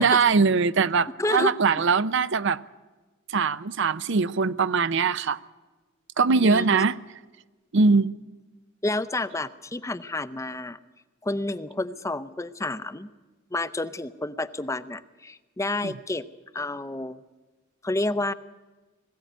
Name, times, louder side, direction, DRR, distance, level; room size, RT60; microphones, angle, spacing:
voice 1, 0.0-2.6 3.3-5.4 6.2-7.0 7.7-8.1 15.8-15.9, right 4 dB, 60° right, 16 dB, 0.6 m, -21 dB
voice 2, 1.2-1.5 6.4-6.8 8.8-10.8 11.2-13.1 13.5-16.2 16.5-17.2 17.8-18.3, left 2 dB, 15° left, 13 dB, 0.6 m, -29 dB
21.0 x 15.5 x 9.3 m, 1.2 s
head